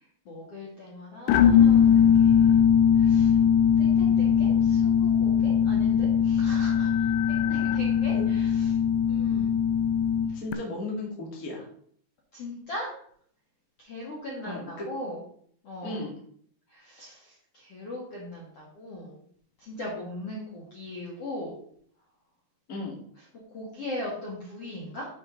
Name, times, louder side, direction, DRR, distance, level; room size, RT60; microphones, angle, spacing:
voice 1, 0.3-2.5 3.0-3.4 3.8-8.8 9.1-9.5 12.3-12.9 13.8-15.2 15.6-16.0 16.7-19.2 19.6-21.5 23.5-25.1, left 1 dB, 50° left, -5 dB, 1.9 m, -39 dB
sound 1, 1.3-10.5, left 8 dB, 80° left, 2.8 m, -21 dB
voice 2, 10.3-11.7 14.4-14.9 15.8-16.1 22.7-23.0, left 2 dB, 30° left, -2 dB, 1.7 m, -35 dB
11.0 x 5.4 x 4.0 m, 0.62 s
omnidirectional pair, 5.3 m